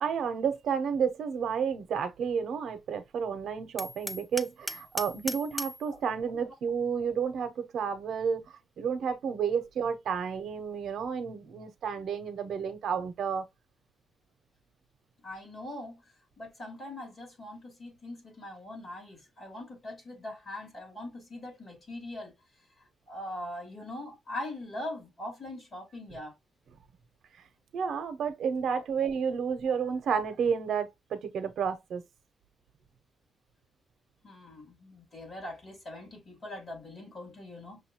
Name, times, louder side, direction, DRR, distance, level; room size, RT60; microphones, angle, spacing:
voice 1, 0.0-13.4 27.7-32.0, right 6 dB, 75° right, 0.8 m, -31 dB
Hammer, 3.8-5.9, equal, ahead, 0.4 m, -37 dB
voice 2, 15.2-16.0 16.4-22.3 23.1-26.3 34.2-37.8, left 1 dB, 40° left, 2.8 m, -41 dB
6.2 x 2.5 x 2.9 m
wide cardioid pair, 155°, 0 cm